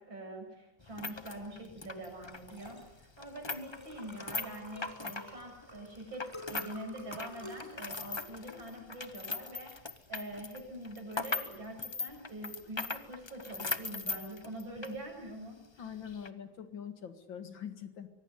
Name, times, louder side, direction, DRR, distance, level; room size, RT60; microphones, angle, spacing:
voice 1, 0.0-9.7 10.1-15.9, right 1 dB, 80° right, 2 dB, 8.0 m, -44 dB
sound 1, 0.8-6.8 7.0-15.0 15.3-15.4 16.1-16.3, left 4 dB, 30° left, 0.4 m, -39 dB
Liquid, 1.8-11.9, equal, 15° left, 3.7 m, -51 dB
voice 2, 15.8-18.1, left 8 dB, 75° left, 9 dB, 2.7 m, -43 dB
24.0 x 18.0 x 9.8 m, 0.95 s
omnidirectional pair, 2.1 m